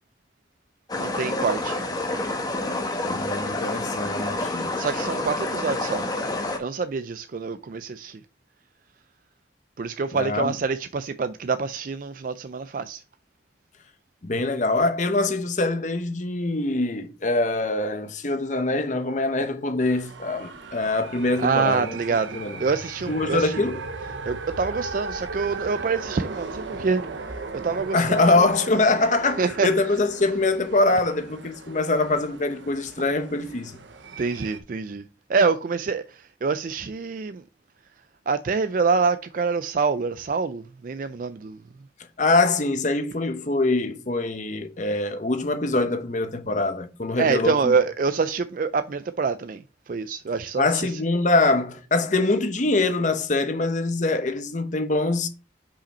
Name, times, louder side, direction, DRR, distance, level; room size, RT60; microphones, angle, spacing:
sound 1, 0.9-6.6, left 2 dB, 20° left, 1.1 m, -28 dB
voice 1, 1.0-1.8 4.8-6.0 6.6-8.2 9.8-13.0 21.4-23.6 24.3-27.1 27.5-28.5 29.4-29.7 34.2-35.0 35.3-37.4 38.3-41.6 47.2-50.9, right 5 dB, 45° right, 0.4 m, -26 dB
voice 2, 3.1-4.7 10.1-10.5 14.2-21.9 22.3-22.6 23.1-23.8 27.9-33.8 42.2-47.7 50.6-55.3, left 2 dB, 40° left, 0.9 m, -24 dB
sound 2, 19.8-34.6, right 3 dB, 90° right, 0.9 m, -37 dB
5.7 x 5.1 x 4.2 m
head